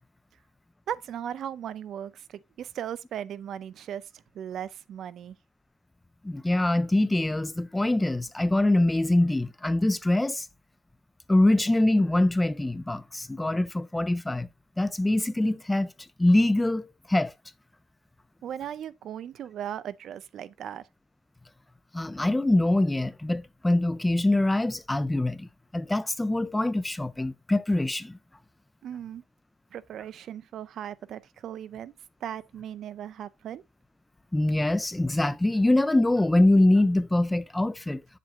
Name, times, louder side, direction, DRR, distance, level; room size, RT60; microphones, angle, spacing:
voice 1, 0.9-4.1 4.3-5.4 18.4-20.8 28.8-29.2 29.7-31.9 32.2-33.6, right 10 dB, 55° right, 0.5 m, -37 dB
voice 2, 6.2-10.5 11.3-14.5 14.8-15.9 16.2-17.3 21.9-25.5 25.7-28.2 34.3-38.0, left 1 dB, 10° left, 0.3 m, -24 dB
7.5 x 7.5 x 2.5 m
cardioid pair, 160°, 0 cm